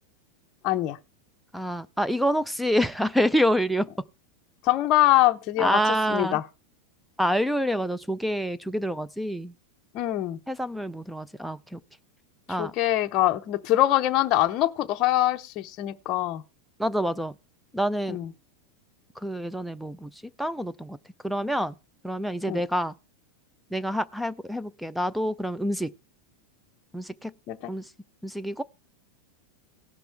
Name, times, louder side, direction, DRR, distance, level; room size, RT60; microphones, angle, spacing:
voice 1, 0.6-1.0 4.6-6.4 9.9-10.4 12.5-16.4 18.1-18.3 22.5-22.6 27.5-27.7, left 15 dB, 35° left, 0.8 m, -24 dB
voice 2, 1.5-3.9 5.6-6.3 7.2-9.5 10.5-11.8 12.5-12.7 16.8-17.3 17.7-18.2 19.2-20.1 20.4-21.0 21.2-21.7 22.0-22.9 23.7-25.9 26.9-27.3 27.7-27.8 28.2-28.6, equal, ahead, 0.4 m, -27 dB
18.0 x 6.0 x 3.4 m
supercardioid pair, 155°, 0 cm